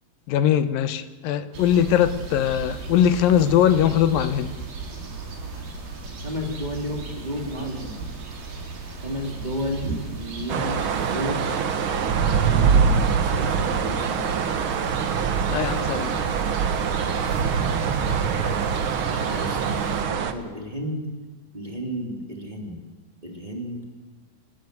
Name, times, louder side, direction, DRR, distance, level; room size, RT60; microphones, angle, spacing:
voice 1, 0.3-4.6 15.5-16.2, left 10 dB, 80° left, 13 dB, 2.7 m, -21 dB
sound 1, 1.5-20.0, right 3 dB, 80° right, 5.6 m, -36 dB
voice 2, 6.2-8.0 9.0-9.9 10.2-11.4 12.4-14.4 19.1-21.0 21.5-22.8 23.2-23.8, equal, 10° right, 1 dB, 3.4 m, -32 dB
sound 2, 10.5-20.3, right 6 dB, 60° right, 1.4 m, -24 dB
25.5 x 20.5 x 8.3 m, 1.3 s
omnidirectional pair, 4.1 m